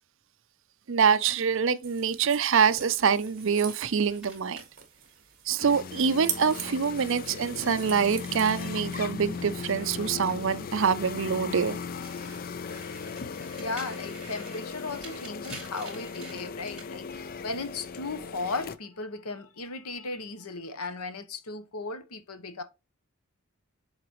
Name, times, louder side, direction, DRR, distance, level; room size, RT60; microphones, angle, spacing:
voice 1, 0.9-4.6 5.5-11.8, right 6 dB, 55° right, 0.5 m, -25 dB
sound 1, 1.8-9.3, right 10 dB, 40° right, 1.5 m, -42 dB
sound 2, 3.0-7.6 7.9-10.8 11.2-16.9, right 2 dB, 5° right, 3.6 m, -50 dB
sound 3, 5.6-18.8, left 5 dB, 40° left, 0.4 m, -38 dB
voice 2, 13.6-22.6, left 3 dB, 85° left, 1.0 m, -36 dB
8.0 x 3.9 x 3.1 m
head